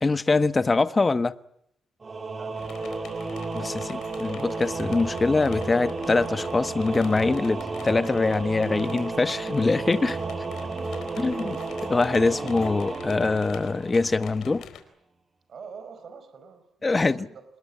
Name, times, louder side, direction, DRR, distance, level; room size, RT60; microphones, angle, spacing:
voice 1, 0.0-1.3 3.5-10.2 11.2-11.6 11.8-14.6 16.8-17.2, left 3 dB, 25° left, 1.2 m, -23 dB
Singing / Musical instrument, 2.0-14.5, right 3 dB, 30° right, 2.5 m, -33 dB
voice 2, 2.2-3.3 10.8-11.2 15.5-17.4, right 6 dB, 50° right, 5.3 m, -46 dB
sound 1, 2.6-14.8, left 9 dB, 75° left, 4.1 m, -46 dB
26.5 x 21.5 x 8.7 m
cardioid pair, 105°, 0 cm